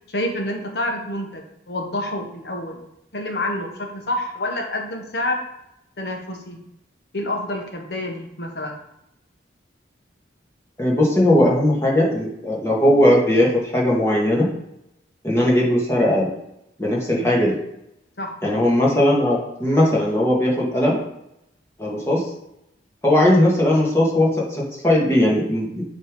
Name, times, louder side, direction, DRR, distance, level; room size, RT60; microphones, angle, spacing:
voice 1, 0.1-2.9 3.1-5.4 6.0-6.6 7.1-8.8 17.1-17.3 18.2-18.3, left 1 dB, 60° left, 2 dB, 1.3 m, -28 dB
voice 2, 10.8-14.5 15.2-16.3 16.8-17.6 18.4-21.0 21.8-22.2 23.0-25.8, left 1 dB, 15° left, -4 dB, 1.8 m, -18 dB
8.2 x 3.4 x 5.2 m, 0.82 s
head